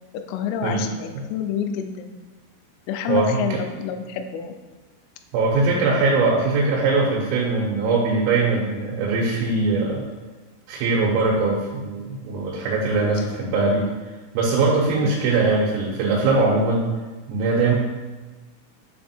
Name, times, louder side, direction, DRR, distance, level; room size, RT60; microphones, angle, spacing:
voice 1, 0.1-2.1 2.9-4.5 15.0-15.1, left 8 dB, 85° left, 6 dB, 3.1 m, -28 dB
voice 2, 3.1-3.6 5.3-10.1 10.7-13.9 14.4-16.9 17.3-17.8, right 3 dB, 90° right, -5 dB, 3.7 m, -21 dB
7.4 x 3.4 x 4.3 m, 1.3 s
omnidirectional pair, 5.9 m